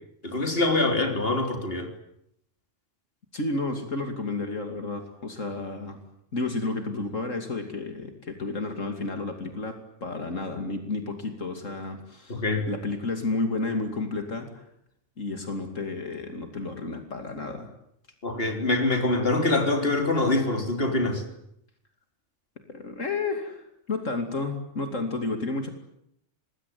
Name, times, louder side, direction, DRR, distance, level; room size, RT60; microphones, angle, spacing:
voice 1, 0.2-1.9 12.3-12.7 18.2-21.2, left 2 dB, 45° left, 5 dB, 3.9 m, -24 dB
voice 2, 3.3-6.0 6.3-14.7 15.2-17.7 22.7-25.7, left 3 dB, 80° left, 5 dB, 3.1 m, -31 dB
26.5 x 21.0 x 9.5 m, 0.75 s
omnidirectional pair, 1.3 m